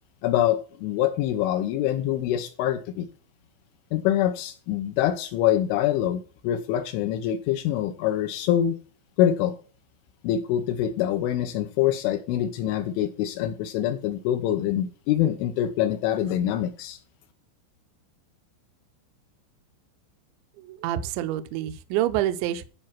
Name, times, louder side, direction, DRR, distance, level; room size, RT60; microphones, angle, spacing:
voice 1, 0.2-3.1 3.9-8.8 9.2-9.6 10.2-17.0, left 11 dB, 80° left, 7 dB, 3.2 m, -25 dB
voice 2, 20.6-22.7, right 13 dB, 80° right, 10 dB, 2.8 m, -27 dB
12.5 x 5.0 x 6.0 m, 0.37 s
omnidirectional pair, 5.8 m